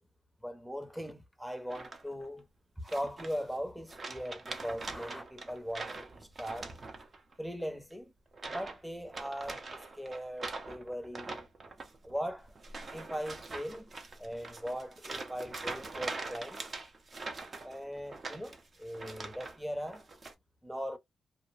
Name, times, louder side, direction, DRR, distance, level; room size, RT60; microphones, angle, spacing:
voice 1, 0.4-2.5 2.8-6.8 7.4-8.1 8.5-11.5 12.0-12.5 12.9-13.9 14.2-16.6 17.6-20.1 20.6-21.0, equal, 5° right, 0.7 m, -40 dB
sound 1, 1.7-2.3 2.9-3.6 3.9-7.3 7.6-7.9 8.3-8.8 9.1-19.6 19.9-20.3, right 3 dB, 45° right, 0.7 m, -43 dB
2.5 x 2.1 x 3.2 m
cardioid pair, 75°, 0 cm